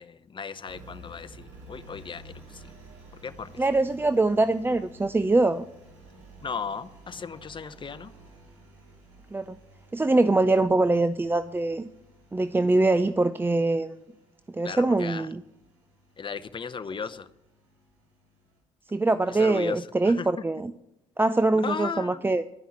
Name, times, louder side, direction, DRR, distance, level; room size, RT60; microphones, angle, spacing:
voice 1, 0.0-2.7 3.2-3.6 6.4-8.1 14.6-15.3 16.2-17.3 19.3-20.3 21.6-22.2, left 6 dB, 35° left, 11 dB, 0.8 m, -36 dB
Engine, 0.6-18.6, right 1 dB, 85° right, 3.3 m, -52 dB
voice 2, 3.6-5.7 9.3-9.6 9.9-11.9 12.3-14.0 14.5-15.4 18.9-20.7 21.2-22.4, right 2 dB, 15° right, 13 dB, 0.4 m, -23 dB
12.0 x 5.5 x 8.5 m, 0.87 s
hypercardioid pair, 55°, 15 cm